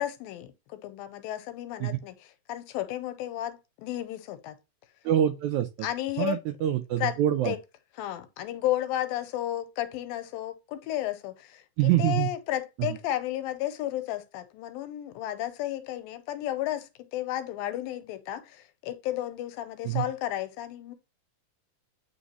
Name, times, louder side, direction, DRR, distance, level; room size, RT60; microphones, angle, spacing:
voice 1, 0.0-2.2 2.5-4.6 5.8-6.4 7.0-7.1 7.5-7.6 8.0-20.9, left 13 dB, 90° left, 2.5 m, -33 dB
voice 2, 5.1-5.7 6.2-7.5 11.8-12.3 12.8-13.0 19.8-20.1, right 12 dB, 90° right, 1.7 m, -25 dB
9.5 x 3.5 x 2.9 m
omnidirectional pair, 4.0 m